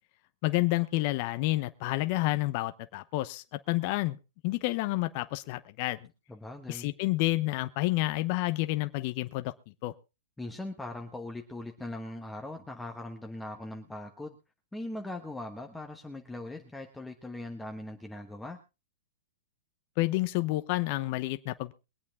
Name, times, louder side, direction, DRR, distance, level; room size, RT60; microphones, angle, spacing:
voice 1, 0.4-4.2 4.4-6.1 6.7-9.5 9.8-9.9 20.0-21.7, left 19 dB, 40° left, 0.8 m, -29 dB
voice 2, 6.3-6.9 10.4-14.4 14.7-18.6, left 1 dB, 5° left, 1.2 m, -40 dB
23.0 x 8.6 x 3.6 m
hypercardioid pair, 150°, 0 cm